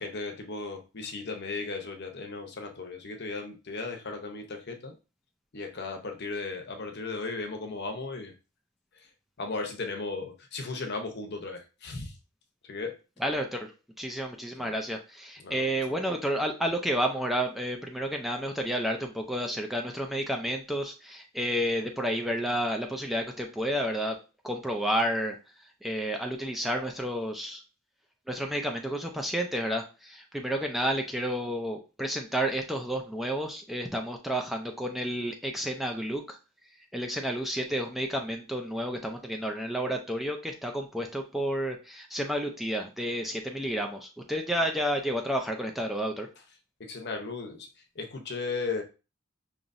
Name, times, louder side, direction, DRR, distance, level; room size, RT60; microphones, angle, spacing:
voice 1, 0.0-5.0 5.5-8.3 8.9-9.1 9.4-12.2 12.6-13.0 14.6-14.7 15.4-16.0 46.8-48.8, left 3 dB, 55° left, 4 dB, 0.8 m, -36 dB
voice 2, 13.2-24.2 24.4-27.6 28.3-36.4 36.9-46.3, equal, ahead, 2 dB, 0.4 m, -31 dB
5.4 x 2.9 x 2.6 m, 0.31 s
head